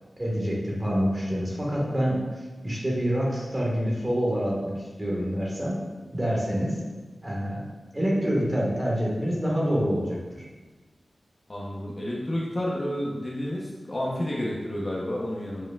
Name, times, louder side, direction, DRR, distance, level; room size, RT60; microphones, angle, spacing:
voice 1, 0.2-5.8 6.1-6.8 7.2-7.6 7.9-10.5, equal, 20° right, -4 dB, 1.6 m, -27 dB
voice 2, 11.5-15.7, left 1 dB, 35° left, -4 dB, 0.9 m, -30 dB
7.9 x 4.9 x 2.4 m, 1.3 s
wide cardioid pair, 95°, 0 cm